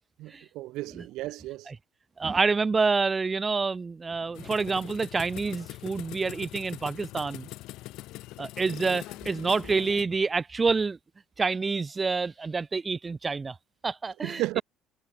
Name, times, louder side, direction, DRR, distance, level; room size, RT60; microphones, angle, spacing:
voice 1, 0.2-1.7 14.2-14.6, right 18 dB, 75° right, 0.7 m, -33 dB
voice 2, 2.2-7.5 8.4-11.0 11.4-13.5 13.8-14.6, right 4 dB, 20° right, 0.9 m, -28 dB
sound 1, 4.4-10.0, left 17 dB, 75° left, 1.4 m, -42 dB
cardioid pair, 130°, 0 cm